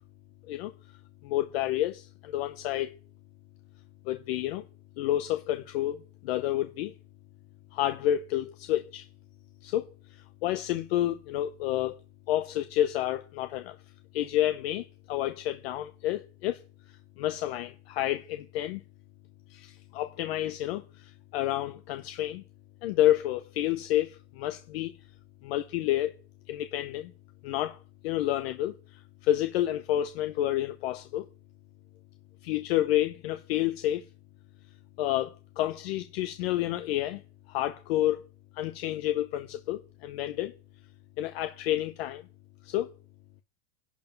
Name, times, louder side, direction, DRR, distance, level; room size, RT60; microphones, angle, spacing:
voice 1, 1.2-2.9 4.0-4.6 5.0-6.9 7.7-9.0 9.6-9.9 10.4-12.0 12.3-13.8 14.1-16.6 17.2-18.8 19.5-22.4 22.8-24.9 25.4-26.1 26.5-27.1 27.4-27.8 28.0-31.3 32.4-34.1 35.0-37.2 37.5-38.2 38.5-40.5 41.2-42.2 42.6-42.9, left 13 dB, 60° left, 0.9 m, -29 dB
11.5 x 6.9 x 5.3 m
supercardioid pair, 150°, 34 cm